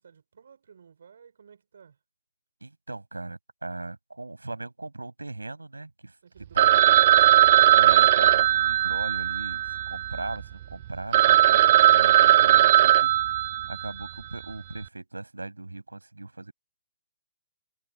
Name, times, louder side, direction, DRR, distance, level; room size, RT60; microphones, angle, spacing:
voice 1, 0.0-2.0 6.2-7.3, right 7 dB, 55° right, 5.3 m, -53 dB
voice 2, 2.6-6.2 6.5-7.0 7.7-13.4 13.7-16.5, right 2 dB, 80° right, 6.5 m, -38 dB
Telephone, 6.6-10.4 10.8-10.9 11.1-14.0, right 13 dB, 40° right, 0.3 m, -19 dB
figure-of-eight pair, 125°, 0 cm